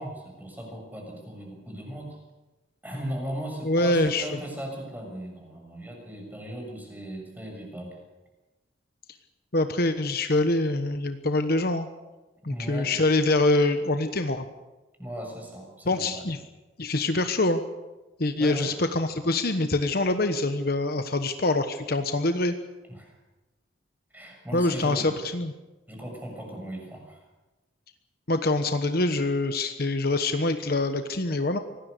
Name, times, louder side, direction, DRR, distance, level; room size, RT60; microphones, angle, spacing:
voice 1, 0.0-2.2 2.8-8.0 12.5-13.0 15.0-16.2 18.4-18.7 22.9-23.1 24.1-25.1 25.9-27.2, right 1 dB, 10° right, 1 dB, 6.7 m, -37 dB
voice 2, 3.6-4.4 9.5-11.9 12.4-14.5 15.8-16.4 16.8-17.6 18.2-22.5 24.5-25.5 28.3-31.6, left 2 dB, 50° left, 8 dB, 1.2 m, -25 dB
24.5 x 18.5 x 6.8 m, 1.1 s
head